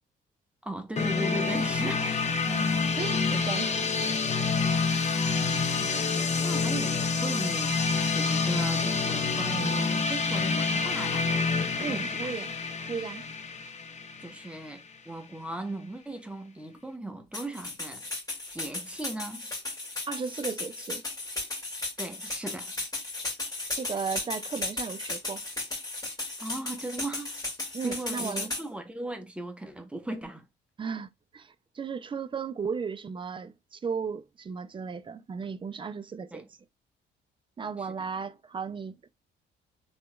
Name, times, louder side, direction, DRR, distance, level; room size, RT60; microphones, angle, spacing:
voice 1, 0.6-2.5 5.5-5.9 6.4-11.3 11.8-12.3 14.2-18.1 18.5-19.5 22.0-22.8 26.4-27.4 27.8-30.5 36.3-36.5 37.8-38.1, right 1 dB, 5° right, 0.8 m, -38 dB
sound 1, 1.0-14.7, left 4 dB, 35° left, 0.6 m, -27 dB
voice 2, 2.5-3.9 11.8-12.5 12.9-13.2 20.1-21.0 23.8-25.4 27.7-28.5 30.8-36.4 37.6-39.1, right 5 dB, 25° right, 0.4 m, -35 dB
sound 2, 17.3-28.6, left 2 dB, 20° left, 2.1 m, -35 dB
3.4 x 2.9 x 2.2 m
cardioid pair, 90°, 20 cm